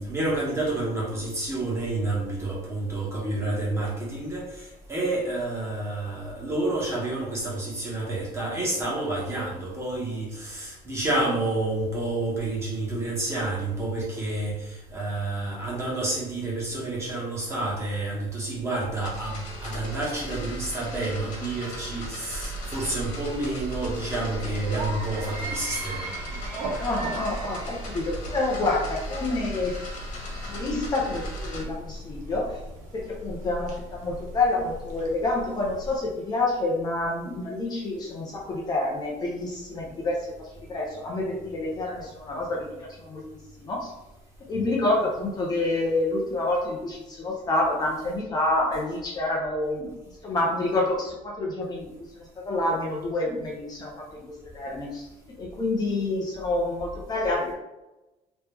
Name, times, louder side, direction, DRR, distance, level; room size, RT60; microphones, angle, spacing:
voice 1, 0.0-26.1, right 2 dB, 20° right, -4 dB, 1.3 m, -29 dB
sound 1, 19.0-31.6, right 1 dB, 55° left, 1.4 m, -37 dB
sound 2, 22.2-36.0, right 1 dB, 60° right, 0.8 m, -38 dB
voice 2, 26.8-29.7 30.5-32.6 32.9-43.9 44.5-49.9 50.2-54.2 54.5-55.1 55.4-57.5, left 2 dB, 30° left, -3 dB, 0.7 m, -28 dB
3.2 x 3.1 x 3.3 m, 1.0 s
cardioid pair, 155°, 15 cm